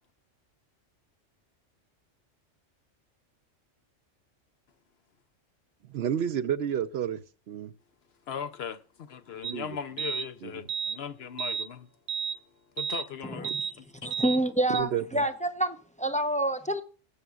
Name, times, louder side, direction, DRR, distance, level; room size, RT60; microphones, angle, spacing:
voice 1, 5.9-7.2 7.5-7.7 9.4-9.7 14.7-15.0, right 9 dB, 65° right, 0.8 m, -29 dB
voice 2, 8.3-11.9 12.3-12.4 12.8-14.1, left 7 dB, 60° left, 0.9 m, -39 dB
sound 1, 9.4-9.5 10.0-10.3 10.7-11.0 11.4-11.7 12.1-12.4 12.8-13.1 13.4-13.7 14.1-14.4 14.7-14.8, right 7 dB, 90° right, 1.1 m, -32 dB
voice 3, 14.0-16.8, right 1 dB, 10° left, 0.5 m, -28 dB
18.5 x 8.1 x 2.4 m
omnidirectional pair, 1.3 m